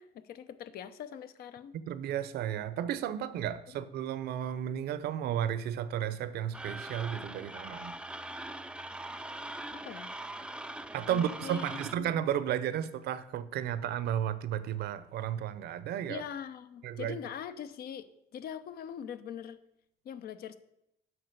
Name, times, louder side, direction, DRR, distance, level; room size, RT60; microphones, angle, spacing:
voice 1, 0.0-1.7 9.7-10.1 11.1-12.1 16.1-19.6 20.0-20.6, left 8 dB, 65° left, 12 dB, 0.7 m, -42 dB
voice 2, 1.9-7.9 10.9-16.2 16.8-17.2, right 10 dB, 70° right, 15 dB, 0.7 m, -33 dB
sound 1, 6.5-11.9, right 1 dB, 5° right, 0.4 m, -42 dB
7.8 x 5.9 x 6.6 m, 0.81 s
cardioid pair, 110°, 17 cm